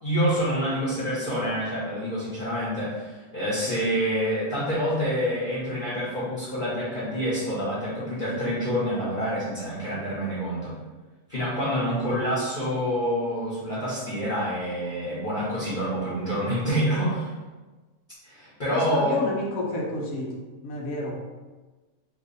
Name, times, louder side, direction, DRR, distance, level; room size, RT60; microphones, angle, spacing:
voice 1, 0.0-10.7 11.3-17.3 18.2-19.2, equal, 40° left, -9 dB, 0.9 m, -27 dB
voice 2, 18.7-20.4 20.6-21.2, left 1 dB, 80° left, 0 dB, 1.0 m, -30 dB
2.7 x 2.4 x 3.9 m, 1.2 s
omnidirectional pair, 1.5 m